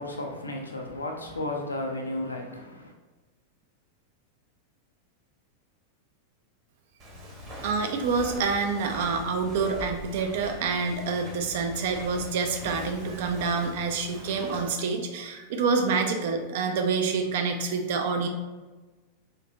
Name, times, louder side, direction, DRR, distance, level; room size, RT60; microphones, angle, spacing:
voice 1, 0.0-2.9, left 1 dB, 80° left, 2 dB, 0.5 m, -33 dB
Walk footsteps, 7.0-14.7, left 1 dB, 35° right, 1.0 m, -43 dB
voice 2, 7.6-18.3, right 4 dB, 55° right, 5 dB, 0.4 m, -27 dB
3.6 x 2.7 x 2.6 m, 1.2 s
figure-of-eight pair, 90°, 0 cm